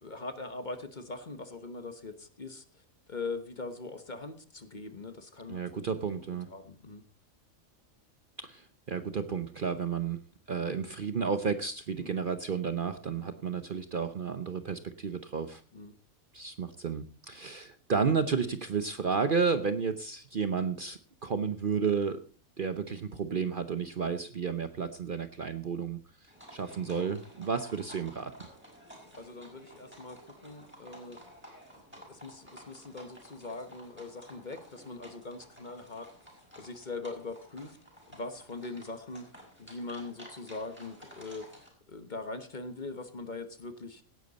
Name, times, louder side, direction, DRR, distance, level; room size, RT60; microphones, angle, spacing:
voice 1, 0.0-2.8 3.1-7.0 12.0-12.2 13.1-13.4 15.7-15.9 29.1-31.2 31.9-37.8 38.1-41.5 41.9-44.0, left 3 dB, 35° left, 10 dB, 1.2 m, -42 dB
voice 2, 5.5-6.5 8.4-15.6 16.3-22.2 22.6-28.3, right 6 dB, 45° right, 10 dB, 0.8 m, -32 dB
sound 1, 26.3-41.7, equal, 10° right, 5.3 m, -53 dB
17.0 x 10.5 x 4.1 m, 0.40 s
omnidirectional pair, 1.4 m